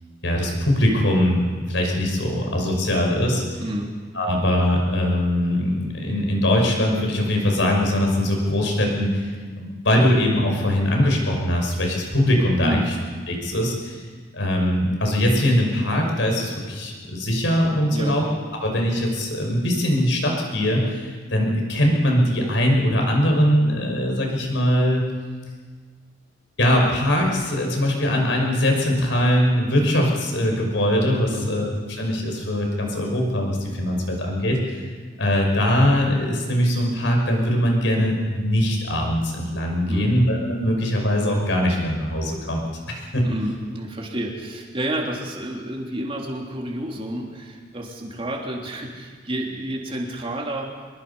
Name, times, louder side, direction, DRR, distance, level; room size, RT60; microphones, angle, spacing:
voice 1, 0.2-1.4 1.7-3.4 4.1-9.3 9.6-12.8 13.3-14.0 14.3-18.2 18.6-25.1 26.6-34.8 35.2-42.6 42.9-43.3, equal, 75° left, 1 dB, 5.7 m, -21 dB
voice 2, 3.6-4.0 12.6-12.9 17.9-18.2 31.3-31.6 39.9-40.2 43.2-50.7, right 1 dB, 30° right, -1 dB, 3.3 m, -30 dB
24.0 x 22.0 x 5.6 m, 1.5 s
head